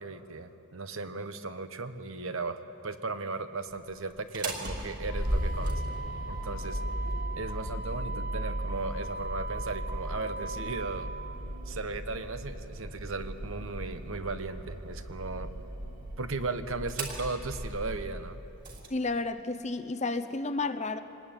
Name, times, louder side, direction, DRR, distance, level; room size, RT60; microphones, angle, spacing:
voice 1, 0.0-5.8 6.3-6.8 7.4-11.1 11.7-15.5 16.2-18.4, right 3 dB, 60° right, 9 dB, 1.2 m, -36 dB
Motor vehicle (road), 4.2-18.9, right 1 dB, 35° right, 3.1 m, -36 dB
voice 2, 18.9-21.0, left 3 dB, 30° left, 9 dB, 0.8 m, -31 dB
25.0 x 20.0 x 9.1 m, 3.0 s
head